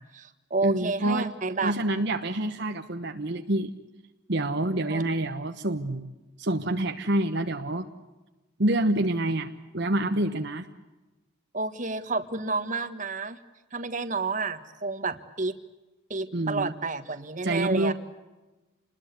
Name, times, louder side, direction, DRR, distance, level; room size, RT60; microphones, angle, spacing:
voice 1, 0.0-1.7 4.9-5.0 11.5-13.4 13.7-15.5 16.1-17.9, right 3 dB, 35° right, 10 dB, 1.5 m, -30 dB
voice 2, 0.6-1.3 1.6-3.7 4.3-6.1 6.4-7.9 8.6-10.7 16.3-16.7 17.4-17.9, right 1 dB, 55° right, 6 dB, 1.2 m, -27 dB
28.5 x 20.5 x 8.2 m, 1.1 s
head